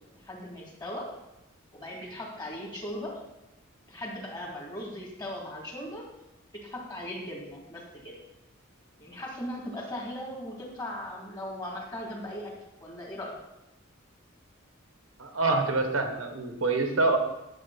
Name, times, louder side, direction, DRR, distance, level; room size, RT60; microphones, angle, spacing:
voice 1, 0.2-1.1 1.7-3.2 3.9-6.0 6.5-8.2 9.0-12.5 12.8-13.3, left 1 dB, 20° left, -1 dB, 2.4 m, -38 dB
voice 2, 15.2-17.2, right 3 dB, 80° right, 5 dB, 1.4 m, -26 dB
10.5 x 7.7 x 4.1 m, 0.91 s
head